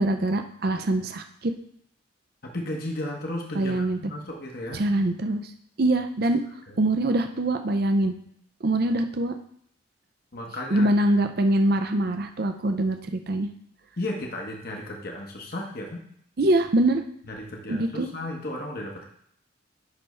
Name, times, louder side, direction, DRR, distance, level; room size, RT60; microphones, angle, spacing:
voice 1, 0.0-1.5 3.6-4.0 4.7-5.5 5.8-6.4 6.8-8.1 8.6-9.3 10.7-13.5 16.4-17.0 17.7-18.1, right 1 dB, 50° right, 7 dB, 0.5 m, -23 dB
voice 2, 2.4-4.8 6.7-6.8 10.3-10.9 14.0-16.0 17.2-19.1, left 1 dB, 50° left, 0 dB, 1.1 m, -34 dB
9.7 x 3.5 x 5.3 m, 0.67 s
head